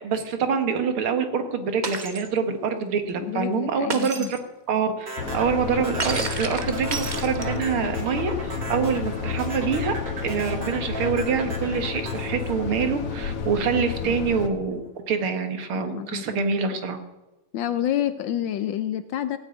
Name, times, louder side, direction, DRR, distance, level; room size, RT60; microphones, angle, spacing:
voice 1, 0.0-4.4 4.7-9.9 10.2-14.8 15.1-17.0, right 6 dB, 70° right, 7 dB, 2.2 m, -26 dB
Shatter, 1.8-2.3 3.9-4.4 6.0-7.7, right 3 dB, 30° right, 0.8 m, -31 dB
voice 2, 3.2-4.3 14.0-14.1 15.8-16.5 17.5-19.4, left 11 dB, 70° left, 12 dB, 1.2 m, -28 dB
sound 1, 5.1-13.4, right 2 dB, 55° right, 3.8 m, -36 dB
sound 2, 5.2-14.5, left 6 dB, 90° left, 2.2 m, -31 dB
17.0 x 6.4 x 9.1 m, 1.0 s
omnidirectional pair, 2.4 m